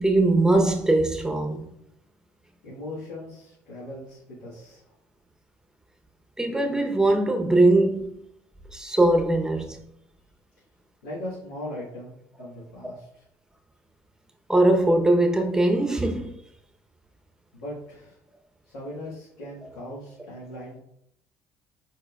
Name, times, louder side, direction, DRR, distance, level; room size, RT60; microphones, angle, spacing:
voice 1, 0.0-1.7 6.4-8.2 8.7-9.8 14.5-16.4, right 2 dB, 5° right, 0.8 m, -21 dB
voice 2, 2.6-4.9 11.0-13.2 17.5-18.2 18.6-20.8, left 1 dB, 90° left, 1.5 m, -39 dB
4.8 x 4.3 x 2.3 m
hypercardioid pair, 65°, 8 cm